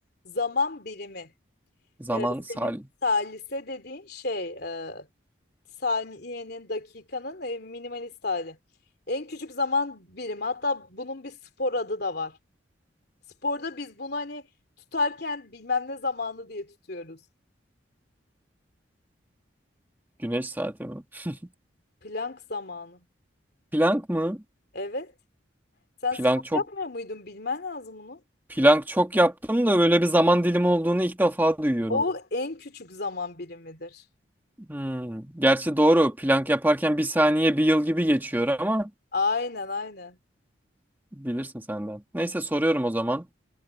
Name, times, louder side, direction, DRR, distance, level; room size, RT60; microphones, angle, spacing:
voice 1, 0.2-1.3 2.1-2.7 3.0-5.1 5.8-8.6 9.1-12.4 13.4-14.5 14.9-17.2 22.0-23.0 24.7-25.1 26.0-26.3 26.5-28.2 31.9-34.0 39.1-40.2, left 3 dB, 55° left, 3.1 m, -31 dB
voice 2, 2.0-2.8 20.2-21.4 23.7-24.4 26.2-26.6 28.5-32.0 34.7-38.9 41.2-43.2, right 1 dB, 10° right, 1.3 m, -23 dB
head